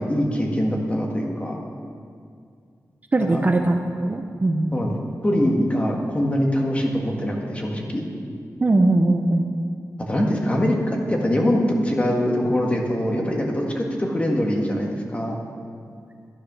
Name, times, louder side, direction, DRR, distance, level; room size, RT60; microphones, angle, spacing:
voice 1, 0.0-1.6 3.2-3.4 4.7-4.9 5.2-8.0 10.1-15.4, equal, 20° left, 0 dB, 1.6 m, -23 dB
voice 2, 3.1-4.8 8.6-9.6, right 2 dB, 30° right, 4 dB, 0.6 m, -20 dB
12.5 x 10.0 x 6.2 m, 2.2 s
wide cardioid pair, 150°, 6 cm